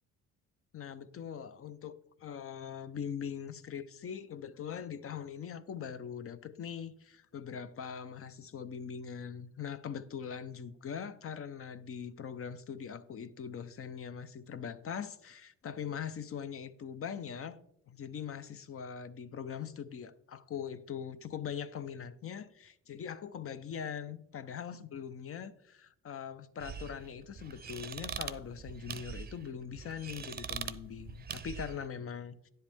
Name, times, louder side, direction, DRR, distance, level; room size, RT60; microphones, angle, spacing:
voice 1, 0.7-17.6 17.9-32.5, left 7 dB, 50° left, 0.6 m, -42 dB
sound 1, 26.6-31.9, right 6 dB, 30° right, 0.6 m, -43 dB
10.0 x 7.9 x 3.5 m
cardioid pair, 90°, 30 cm